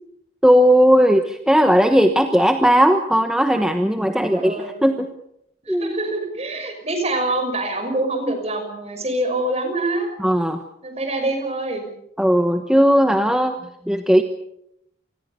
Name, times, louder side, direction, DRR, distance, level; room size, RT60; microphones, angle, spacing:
voice 1, 0.4-5.1 5.7-5.9 10.2-10.6 12.2-13.6 13.9-14.2, equal, 5° right, 5 dB, 1.1 m, -17 dB
voice 2, 4.1-4.9 5.6-10.1 10.8-11.9, right 2 dB, 35° right, 6 dB, 6.0 m, -25 dB
27.5 x 21.0 x 6.8 m, 0.80 s
head